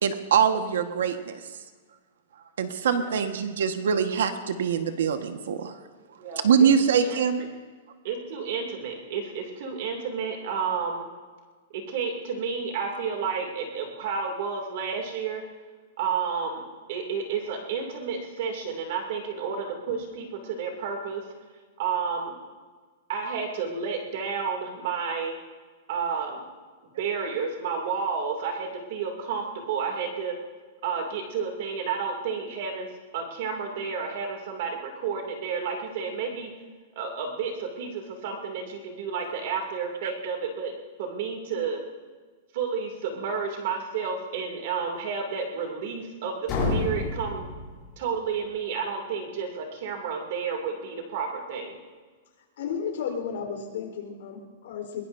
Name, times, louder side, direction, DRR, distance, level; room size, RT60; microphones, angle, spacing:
voice 1, 0.0-1.4 2.6-5.7 6.4-7.4, right 7 dB, 85° right, 7 dB, 1.4 m, -23 dB
voice 2, 6.2-6.7 7.0-7.2 8.0-11.1 11.7-15.4 16.0-21.2 21.8-22.3 23.1-25.4 25.9-26.5 27.0-30.4 30.8-36.5 36.9-41.8 42.5-47.5 48.0-51.8, right 6 dB, 50° right, 2 dB, 2.5 m, -31 dB
sound 1, 46.5-48.3, left 2 dB, 20° left, 6.7 m, -29 dB
voice 3, 52.6-55.0, left 7 dB, 65° left, 2 dB, 4.0 m, -33 dB
22.0 x 22.0 x 2.7 m, 1.5 s
supercardioid pair, 175°, 0 cm